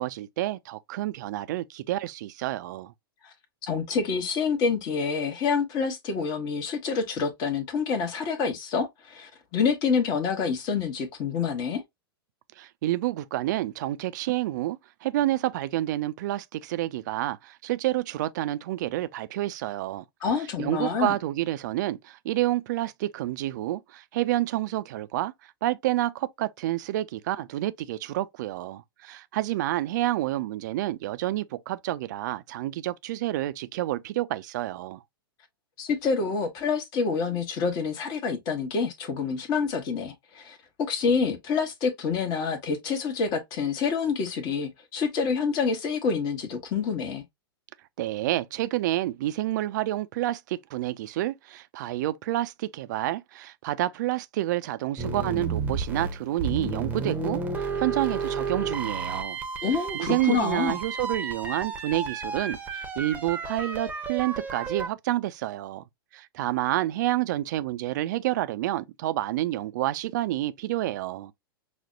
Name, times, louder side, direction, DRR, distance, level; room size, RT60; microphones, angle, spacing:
voice 1, 0.0-2.9 12.6-20.0 20.6-25.3 25.6-35.0 48.0-59.4 59.9-65.8 66.1-71.3, right 15 dB, 50° right, 0.4 m, -29 dB
voice 2, 3.6-11.8 20.2-21.1 35.8-47.2 59.6-60.8, left 5 dB, 35° left, 0.9 m, -27 dB
sound 1, 55.0-64.9, right 4 dB, 15° right, 0.7 m, -32 dB
6.0 x 2.1 x 2.4 m
figure-of-eight pair, 100°, 12 cm